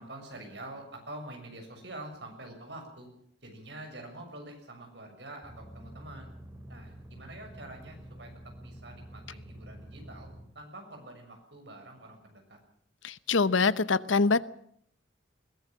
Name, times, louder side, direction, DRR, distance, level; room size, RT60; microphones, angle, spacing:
voice 1, 0.0-3.1 3.4-6.3 6.7-10.3 10.6-12.6, right 1 dB, 65° right, 4 dB, 6.9 m, -46 dB
sound 1, 5.4-10.4, right 1 dB, 15° right, 3.2 m, -48 dB
voice 2, 13.0-14.4, left 4 dB, 85° left, 17 dB, 0.9 m, -24 dB
21.5 x 17.5 x 7.4 m, 0.67 s
head